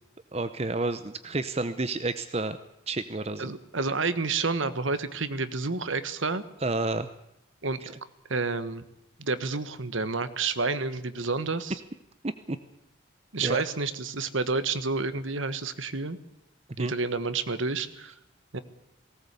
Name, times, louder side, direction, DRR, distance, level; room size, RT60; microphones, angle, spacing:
voice 1, 0.3-2.6 2.9-3.5 6.6-7.1 12.5-12.6 13.4-13.6 16.8-16.9, right 2 dB, 30° right, 11 dB, 0.7 m, -30 dB
voice 2, 3.4-6.4 7.6-7.9 8.3-8.8 9.2-11.8 13.3-16.2 16.8-18.1 18.5-18.6, right 4 dB, 80° right, 12 dB, 1.4 m, -29 dB
19.0 x 18.0 x 8.2 m, 0.80 s
head